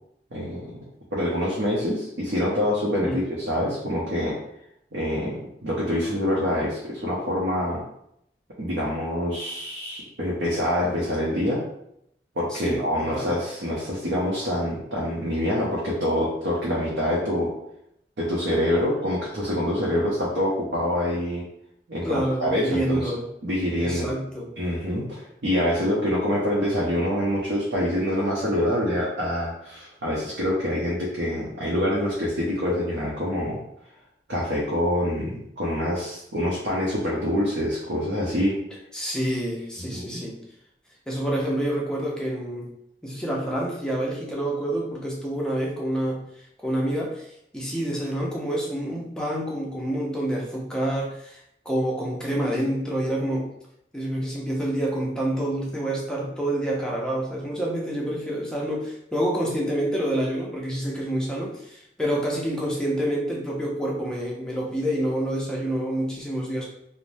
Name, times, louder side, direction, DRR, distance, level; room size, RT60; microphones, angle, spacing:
voice 1, 0.3-0.8 1.1-4.4 4.9-7.8 8.6-11.6 12.4-17.5 18.2-21.4 21.9-23.1 23.4-24.1 24.6-33.6 34.3-38.6 39.9-40.2, left 1 dB, 80° right, -6 dB, 0.6 m, -26 dB
voice 2, 12.5-13.3 22.0-23.2 23.8-24.5 38.9-40.4 41.1-42.7 43.0-46.2 46.6-47.3 47.5-51.4 51.7-53.5 53.9-66.7, right 1 dB, 5° left, -3 dB, 0.5 m, -27 dB
3.1 x 2.0 x 2.6 m, 0.76 s
head